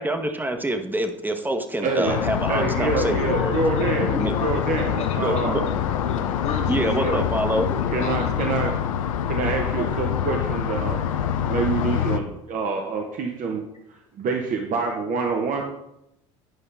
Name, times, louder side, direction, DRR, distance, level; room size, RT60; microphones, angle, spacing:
voice 1, 0.0-3.5 4.0-4.3 5.2-5.6 6.1-6.2 6.7-7.7, right 1 dB, 10° right, 6 dB, 1.0 m, -26 dB
voice 2, 1.8-2.2 2.5-5.8 6.8-7.2 7.9-8.8 9.3-11.0 11.5-13.6 14.2-15.6, right 4 dB, 50° right, 2 dB, 1.0 m, -26 dB
sound 1, 2.1-12.2, left 9 dB, 90° left, 0.5 m, -25 dB
voice 3, 2.9-8.7 14.9-15.0, left 4 dB, 40° left, 1 dB, 1.4 m, -33 dB
9.1 x 5.4 x 3.4 m, 0.84 s
hypercardioid pair, 70°, 17 cm